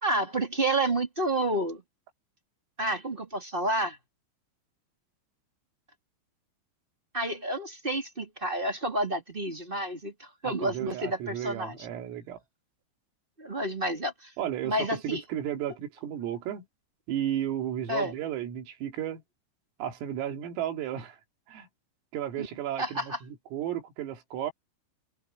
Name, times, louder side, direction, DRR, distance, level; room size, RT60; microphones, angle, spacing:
voice 1, 0.0-1.8 2.8-4.0 7.1-11.9 13.4-14.3 14.6-15.2 17.9-18.1 22.4-22.5 22.8-23.2, right 1 dB, 15° right, 1.9 m, -30 dB
voice 2, 10.4-12.4 14.4-16.7 17.1-19.2 19.8-21.2 21.5-21.7 22.1-24.5, right 11 dB, 80° right, 5.5 m, -33 dB
omnidirectional pair, 6.0 m